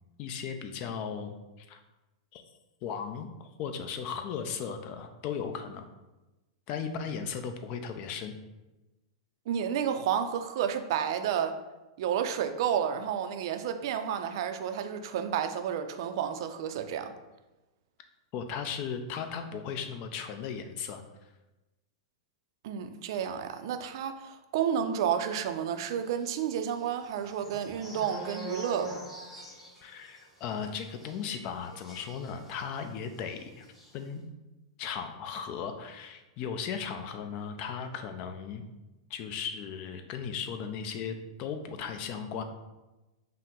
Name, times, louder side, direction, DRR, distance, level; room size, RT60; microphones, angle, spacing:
voice 1, 0.2-1.8 2.3-2.4 2.8-5.8 6.7-8.4 18.3-21.0 29.8-33.7 33.9-34.2 34.8-38.6 39.1-42.4, left 6 dB, 45° left, 7 dB, 0.5 m, -36 dB
voice 2, 9.5-11.6 12.0-17.1 22.6-28.9, right 8 dB, 60° right, 8 dB, 0.4 m, -31 dB
sound 1, 26.2-32.9 33.2-33.3 33.6-33.9, right 2 dB, 5° left, 1.4 m, -44 dB
5.4 x 2.1 x 3.5 m, 1.1 s
hypercardioid pair, 125°, 3 cm